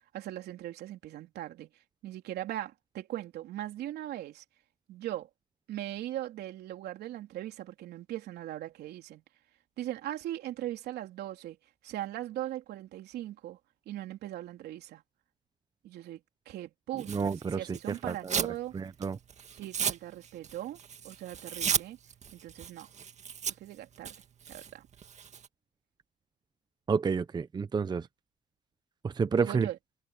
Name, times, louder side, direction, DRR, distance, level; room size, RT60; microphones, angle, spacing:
voice 1, 0.1-1.7 2.0-4.4 4.9-5.3 5.7-9.2 9.8-11.6 11.8-13.6 13.9-15.0 15.8-16.2 16.5-18.8 19.5-20.8 21.0-22.0 22.3-22.9 23.6-24.1 24.5-24.9 29.4-29.8, right 13 dB, 75° right, 3.4 m, -39 dB
Tearing, 17.0-18.6 18.9-25.5, right 7 dB, 45° right, 2.0 m, -35 dB
voice 2, 17.1-17.8 18.0-18.4 18.7-19.2 26.9-28.0 29.0-29.7, right 5 dB, 25° right, 0.8 m, -30 dB
cardioid pair, 110°, 17 cm